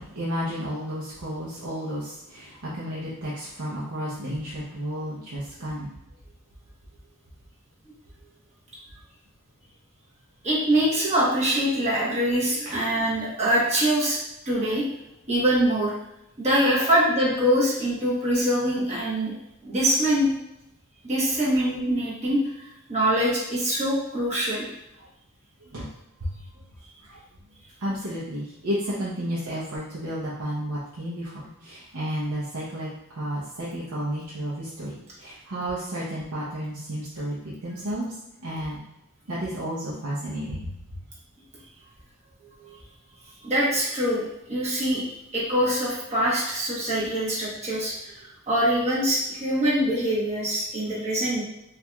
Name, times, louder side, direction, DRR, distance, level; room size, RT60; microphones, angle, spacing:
voice 1, 0.0-5.9 12.7-12.8 21.4-21.6 25.0-25.1 25.7-25.9 26.2-26.6 27.0-27.2 27.8-38.2 38.4-38.8 39.3-40.7, equal, 70° right, -8 dB, 0.7 m, -32 dB
voice 2, 10.4-14.2 14.5-14.8 15.3-15.9 16.4-19.3 19.6-20.3 21.1-24.6 43.4-44.2 44.5-45.0 45.3-51.4, equal, 30° right, -6 dB, 1.0 m, -24 dB
4.4 x 2.5 x 2.2 m, 0.87 s
head